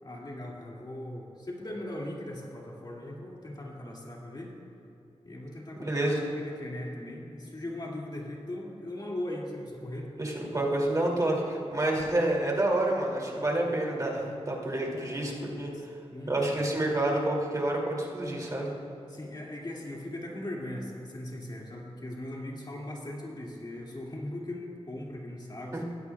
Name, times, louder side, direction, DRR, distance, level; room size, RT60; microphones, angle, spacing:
voice 1, 0.0-4.5 5.2-10.1 15.7-15.8 16.1-16.6 19.1-25.8, left 1 dB, 40° left, -3 dB, 2.4 m, -39 dB
voice 2, 5.8-6.2 10.2-15.7 16.3-18.7 25.7-25.8, right 1 dB, 30° right, -2 dB, 2.6 m, -28 dB
21.5 x 16.0 x 2.4 m, 2.9 s
wide cardioid pair, 100°, 11 cm